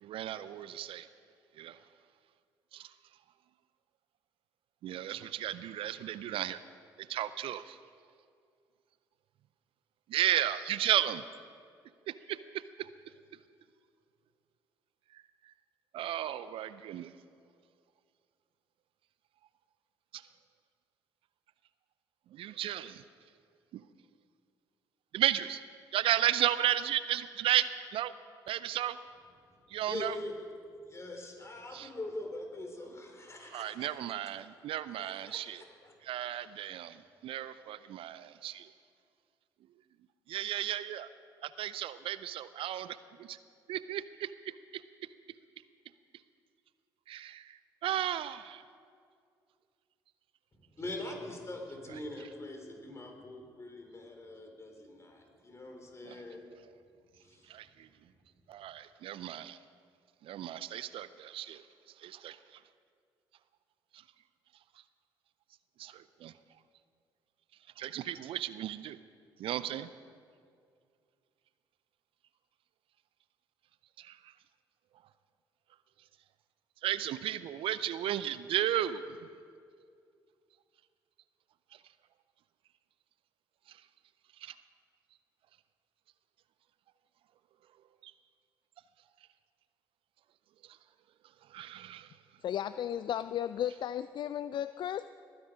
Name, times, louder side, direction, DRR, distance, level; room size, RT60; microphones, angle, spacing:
voice 1, 0.0-1.1 1.6-1.8 2.7-2.9 4.8-6.6 7.1-7.8 10.1-11.2 12.1-12.4 12.8-12.9 15.9-17.1 20.1-20.2 22.3-23.0 25.1-25.6 25.9-28.1 28.5-29.0 29.7-30.2 31.7-31.9 33.5-35.6 36.0-38.7 40.3-41.1 41.4-43.4 43.7-44.3 44.7-44.8 47.1-48.6 56.1-56.2 57.5-57.9 58.5-59.6 60.2-61.6 62.0-62.4 63.9-64.0 65.8-66.3 67.8-69.0 69.4-69.9 74.0-74.2 76.8-79.0 84.4-84.5 88.0-88.1 91.5-92.1, right 12 dB, 60° right, 15 dB, 0.4 m, -34 dB
voice 2, 29.9-30.4 30.8-34.0 34.2-34.3 35.0-35.9 50.5-56.4 57.2-57.6, left 2 dB, 25° left, 2 dB, 3.8 m, -43 dB
voice 3, 92.4-95.1, left 10 dB, 50° left, 14 dB, 0.3 m, -34 dB
20.5 x 9.7 x 5.0 m, 2.2 s
hypercardioid pair, 50°, 10 cm